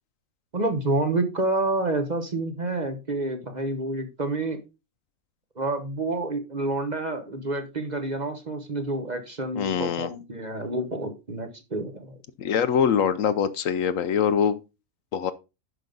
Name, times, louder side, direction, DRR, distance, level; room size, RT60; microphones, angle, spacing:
voice 1, 0.5-4.6 5.6-12.1, right 2 dB, 35° right, 1.1 m, -28 dB
voice 2, 9.5-10.1 12.4-14.6 15.1-15.3, left 7 dB, 70° left, 1.0 m, -23 dB
11.0 x 5.4 x 3.9 m
omnidirectional pair, 1.5 m